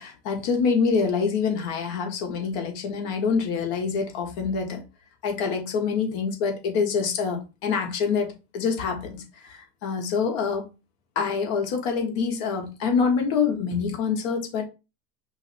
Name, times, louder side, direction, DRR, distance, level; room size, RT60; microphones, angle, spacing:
voice 1, 0.0-4.8 5.2-10.7 11.1-14.7, left 5 dB, 55° left, 1.6 m, -26 dB
5.6 x 2.2 x 4.3 m
hypercardioid pair, 95°, 47 cm